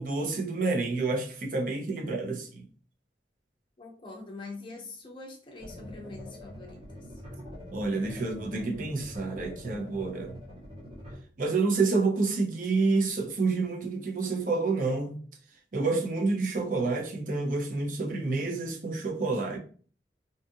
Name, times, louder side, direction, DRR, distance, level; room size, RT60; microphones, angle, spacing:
voice 1, 0.0-2.6 7.7-10.4 11.4-15.2 15.7-19.6, right 3 dB, 50° right, 0.5 m, -28 dB
voice 2, 3.8-7.1, left 3 dB, 30° left, 0.5 m, -44 dB
sound 1, 5.6-11.2, equal, 30° right, 0.9 m, -44 dB
2.6 x 2.4 x 2.6 m
head